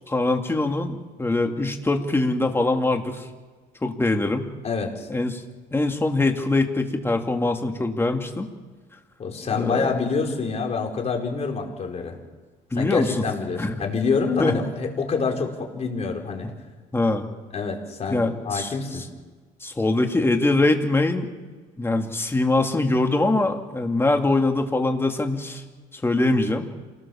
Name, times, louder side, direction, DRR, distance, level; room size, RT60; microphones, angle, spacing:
voice 1, 0.1-3.3 3.8-4.5 5.1-5.4 5.7-8.5 9.5-9.9 12.7-13.2 13.6-13.8 14.4-14.6 16.9-17.3 18.1-18.7 19.6-21.3 21.8-25.6 25.9-26.7, left 2 dB, 15° left, 4 dB, 2.6 m, -23 dB
voice 2, 4.6-5.1 9.2-12.2 12.8-16.5 17.5-19.0, left 4 dB, 40° left, 2 dB, 4.8 m, -26 dB
28.0 x 18.5 x 7.3 m, 1.4 s
cardioid pair, 110°, 17 cm